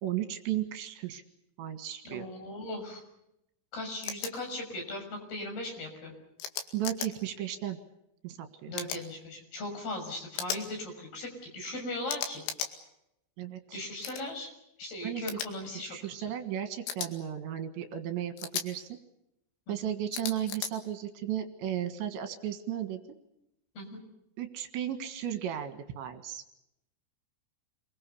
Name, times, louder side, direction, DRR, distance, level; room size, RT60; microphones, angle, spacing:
voice 1, 0.0-1.2 1.6-2.3 6.7-7.8 8.2-8.7 13.4-13.8 15.0-15.2 15.8-18.9 19.7-23.0 24.4-26.4, right 11 dB, 70° right, 8 dB, 3.8 m, -35 dB
voice 2, 2.0-3.0 3.7-6.1 8.7-12.4 13.7-14.5 14.8-16.0 19.7-19.9 23.8-24.0, left 1 dB, 55° left, 3 dB, 8.1 m, -38 dB
sound 1, 4.0-4.3 6.4-7.1 8.7-9.0 10.4-10.6 12.1-12.7 14.0-14.2 15.3-15.5 16.9-17.1 18.4-18.7 20.1-20.7, left 8 dB, 80° left, 4.6 m, -35 dB
28.0 x 22.5 x 7.0 m, 0.82 s
omnidirectional pair, 5.5 m